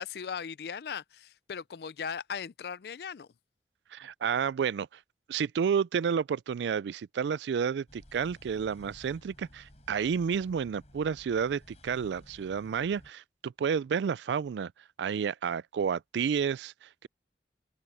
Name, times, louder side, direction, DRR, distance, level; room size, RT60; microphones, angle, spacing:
voice 1, 0.0-3.3, left 6 dB, 65° left, 0.4 m, -38 dB
voice 2, 3.9-4.9 5.3-14.7 15.0-17.1, right 7 dB, 80° right, 0.3 m, -30 dB
sound 1, 7.9-13.1, equal, 40° left, 7.4 m, -55 dB
open air
head